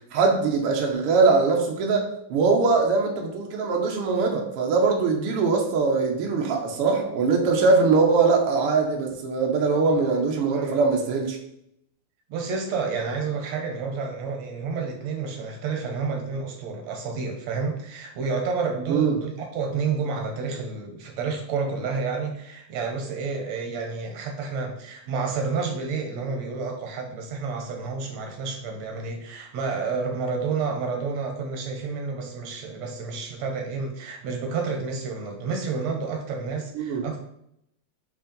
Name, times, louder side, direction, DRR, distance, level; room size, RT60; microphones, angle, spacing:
voice 1, 0.1-11.4 18.9-19.2 36.7-37.1, right 4 dB, 90° right, 1 dB, 1.2 m, -22 dB
voice 2, 12.3-37.2, right 4 dB, 70° right, 3 dB, 1.6 m, -30 dB
7.3 x 2.8 x 5.2 m, 0.75 s
omnidirectional pair, 4.0 m